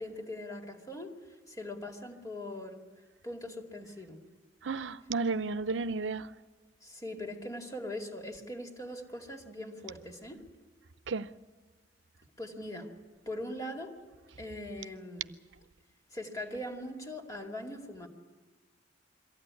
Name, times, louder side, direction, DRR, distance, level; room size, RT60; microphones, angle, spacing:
voice 1, 0.0-2.8 3.2-4.2 6.8-10.4 12.4-12.9 13.3-13.9 14.4-15.4 16.1-18.1, left 1 dB, 20° left, 2.4 m, -41 dB
voice 2, 4.6-6.3 11.1-11.3, right 4 dB, 85° right, 0.7 m, -32 dB
23.0 x 15.0 x 9.8 m
head